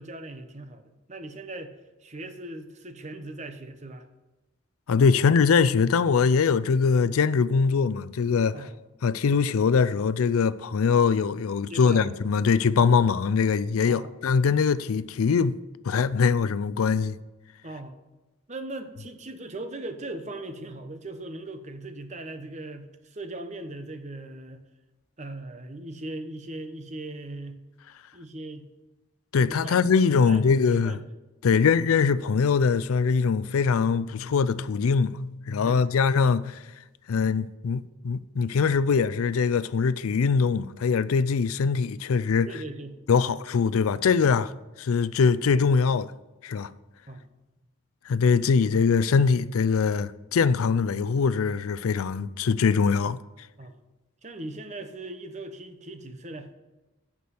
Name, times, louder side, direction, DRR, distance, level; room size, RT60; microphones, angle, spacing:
voice 1, 0.0-1.7 2.0-4.1 8.5-8.8 11.7-12.1 13.9-14.2 17.6-18.0 18.5-24.6 25.2-27.6 28.1-28.7 29.4-29.8 30.1-31.1 35.6-35.9 42.5-43.0 43.3-43.4 47.1-47.3 53.6-53.8 54.2-56.5, right 2 dB, 35° right, 0.9 m, -39 dB
voice 2, 4.9-8.6 9.0-15.6 15.8-17.2 29.3-31.0 31.4-36.6 37.1-42.5 43.1-44.5 44.8-46.1 46.4-46.7 48.1-53.2, left 5 dB, 80° left, 0.4 m, -22 dB
8.4 x 6.1 x 7.7 m
head